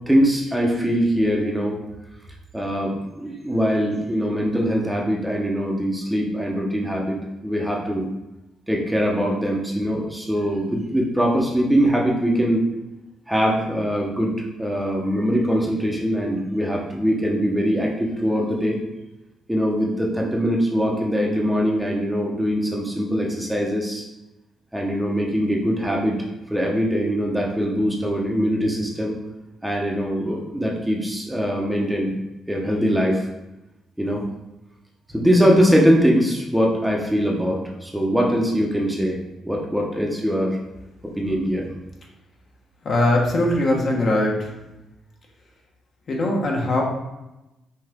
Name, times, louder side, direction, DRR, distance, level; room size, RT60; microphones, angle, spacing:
voice 1, 0.1-1.8 2.5-7.2 7.4-8.1 8.7-12.6 13.3-18.8 19.5-24.0 24.7-26.2 26.5-29.1 29.6-32.2 32.5-33.2 34.0-34.2 35.1-39.2 39.4-40.6 41.0-41.7, equal, 5° right, -1 dB, 0.8 m, -22 dB
voice 2, 42.8-44.5 46.1-46.8, left 1 dB, 50° left, -1 dB, 1.2 m, -21 dB
5.7 x 2.5 x 3.6 m, 0.97 s
cardioid pair, 90°, 0 cm